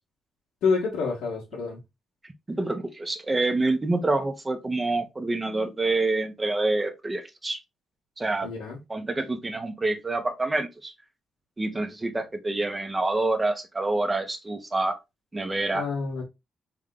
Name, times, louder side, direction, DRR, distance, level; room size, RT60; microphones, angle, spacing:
voice 1, 0.6-1.8 8.4-8.8 15.7-16.2, left 5 dB, 85° left, 1.5 m, -27 dB
voice 2, 2.5-7.6 8.2-8.5 8.9-10.9 11.6-15.0 15.3-15.8, right 2 dB, 25° right, 1.3 m, -27 dB
3.7 x 3.6 x 3.7 m
cardioid pair, 70°, 0 cm